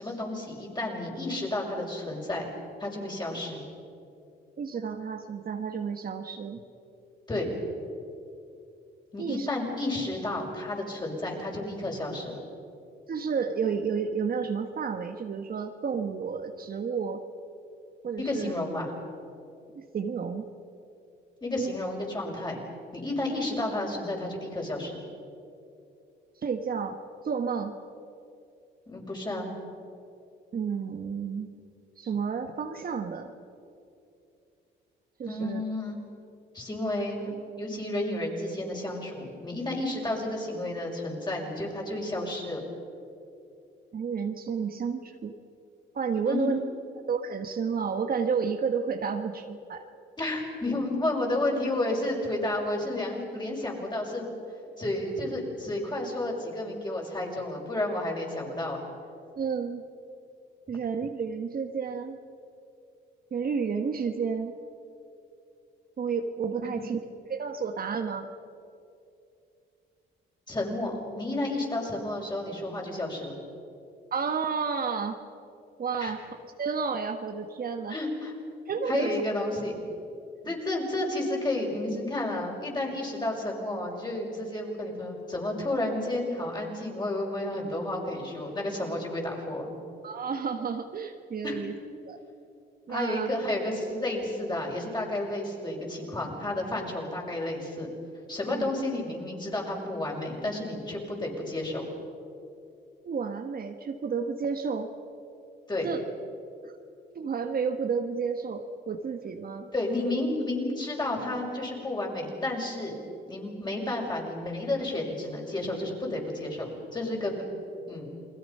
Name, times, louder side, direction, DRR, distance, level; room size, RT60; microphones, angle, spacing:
voice 1, 0.0-2.5 2.8-3.6 7.3-7.5 9.1-12.4 18.2-18.9 21.4-22.6 22.9-25.0 28.9-29.5 35.2-36.0 36.5-37.3 37.6-42.6 46.2-46.5 50.2-54.3 54.8-58.8 66.6-66.7 70.5-73.4 76.0-76.1 77.9-78.3 78.9-79.8 80.4-89.7 91.4-91.6 92.9-97.9 98.3-101.9 105.7-105.9 109.7-112.9 113.3-117.4 117.9-118.1, left 1 dB, 20° left, -1 dB, 6.1 m, -31 dB
voice 2, 4.6-6.6 9.2-9.5 13.1-17.2 18.0-18.5 19.7-20.4 21.6-21.7 26.4-27.0 27.2-27.8 30.5-31.5 32.0-33.3 35.2-35.6 43.9-45.3 45.9-46.6 47.1-49.8 59.4-59.8 60.7-62.2 63.3-64.6 66.0-67.0 67.3-68.3 74.1-75.2 75.8-76.2 76.6-77.9 78.7-79.1 80.4-80.6 90.0-91.7 92.1-92.2 92.9-93.3 98.5-98.7 103.0-104.9 105.8-106.0 106.6-106.7 107.1-109.7, right 6 dB, 50° right, 6 dB, 1.4 m, -31 dB
29.0 x 21.0 x 5.6 m, 2.6 s
cardioid pair, 90°, 20 cm